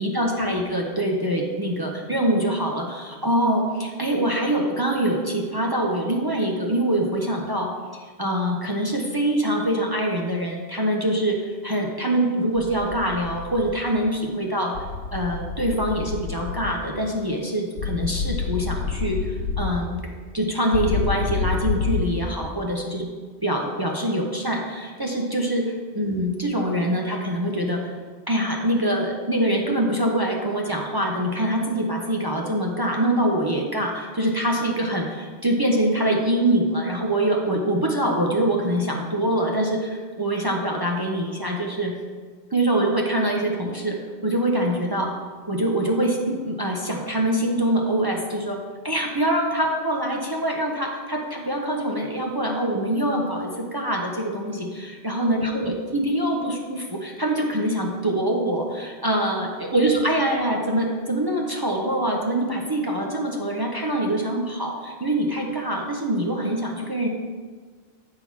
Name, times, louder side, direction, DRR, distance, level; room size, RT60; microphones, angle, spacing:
voice 1, 0.0-14.7 15.1-20.0 20.3-23.1 23.4-25.7 25.9-27.9 28.3-41.9 42.5-44.0 44.2-45.1 45.5-48.6 48.8-67.1, right 1 dB, 25° right, -1 dB, 0.7 m, -24 dB
sound 1, 12.6-13.7 14.7-16.8 17.8-19.8 20.7-22.0, left 5 dB, 80° left, 1.0 m, -28 dB
8.6 x 3.8 x 6.1 m, 1.5 s
omnidirectional pair, 1.0 m